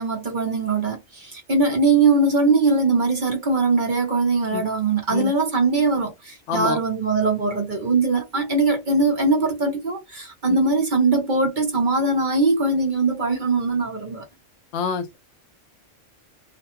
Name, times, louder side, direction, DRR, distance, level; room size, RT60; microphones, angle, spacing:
voice 1, 0.0-14.2, right 3 dB, 45° right, 0.8 m, -21 dB
voice 2, 6.5-6.8 10.5-10.6 14.7-15.2, left 6 dB, 70° left, 0.8 m, -26 dB
2.5 x 2.2 x 2.8 m
omnidirectional pair, 1.3 m